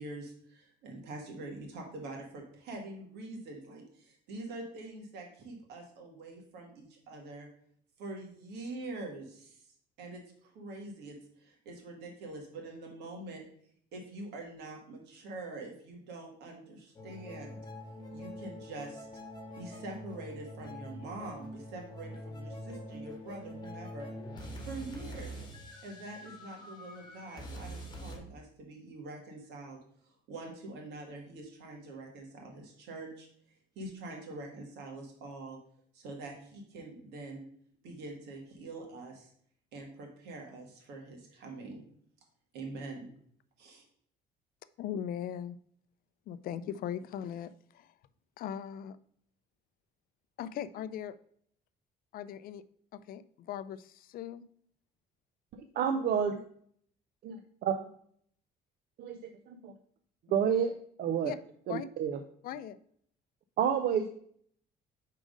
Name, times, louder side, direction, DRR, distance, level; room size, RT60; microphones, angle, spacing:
voice 1, 0.0-7.5 8.0-9.7 10.0-13.4 13.9-17.6 18.1-19.1 19.6-24.1 24.7-25.4 25.8-29.8 30.0-35.6 35.9-37.5 37.8-39.3 39.7-41.8 42.5-43.1 43.6-43.8, right 2 dB, 85° right, 1 dB, 1.6 m, -45 dB
sound 1, 17.0-28.2, equal, 25° left, 1.3 m, -45 dB
voice 2, 44.8-45.6 46.3-47.9 48.4-49.0 50.4-51.1 52.1-52.6 52.9-54.4 61.2-61.4 61.7-61.9 62.4-62.8, left 9 dB, 60° left, 14 dB, 0.4 m, -39 dB
voice 3, 55.8-56.4 57.2-57.4 57.6-57.9 59.0-59.2 59.5-59.7 60.3-60.7 61.0-61.3 61.7-62.2 63.6-64.1, right 8 dB, 65° right, 7 dB, 0.5 m, -29 dB
5.1 x 3.8 x 5.0 m, 0.62 s
cardioid pair, 110°, 17 cm